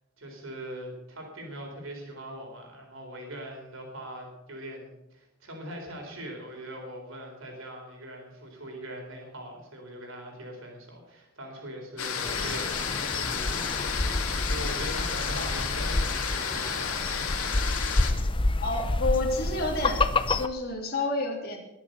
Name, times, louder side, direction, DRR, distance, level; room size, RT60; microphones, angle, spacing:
voice 1, 0.2-14.1 14.4-17.3, right 1 dB, 70° right, 1 dB, 4.1 m, -41 dB
sound 1, 12.0-18.1, left 6 dB, 80° left, 2.0 m, -32 dB
sound 2, 12.2-20.5, left 2 dB, 25° left, 0.6 m, -29 dB
voice 2, 18.6-20.0 20.4-21.6, left 2 dB, 45° left, -1 dB, 3.3 m, -29 dB
21.0 x 7.2 x 6.7 m, 0.93 s
head